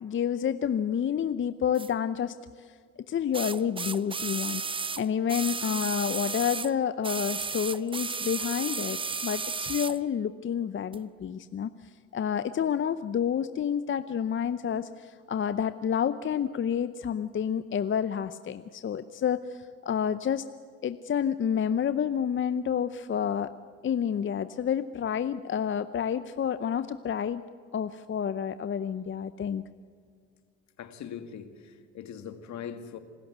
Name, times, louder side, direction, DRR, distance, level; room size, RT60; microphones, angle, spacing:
voice 1, 0.0-2.7 3.1-20.4 20.8-23.5 23.8-27.4 27.7-29.6, left 8 dB, 40° left, 0.7 m, -29 dB
sound 1, 1.8-1.9 3.3-6.7 7.0-10.0 10.9-11.0, right 5 dB, 15° right, 0.5 m, -33 dB
voice 2, 30.8-33.0, left 8 dB, 65° left, 2.1 m, -41 dB
27.0 x 13.5 x 8.1 m
supercardioid pair, 70°, 30 cm